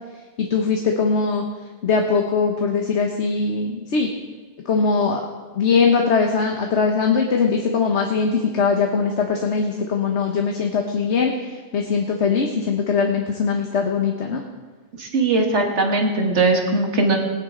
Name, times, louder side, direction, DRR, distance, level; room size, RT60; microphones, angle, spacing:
voice 1, 0.4-1.4 1.8-4.1 4.6-5.2 5.6-14.4, left 5 dB, 70° left, 2 dB, 1.3 m, -21 dB
voice 2, 15.0-17.2, right 3 dB, 70° right, 1 dB, 1.9 m, -19 dB
19.0 x 10.0 x 3.8 m, 1.3 s
omnidirectional pair, 1.2 m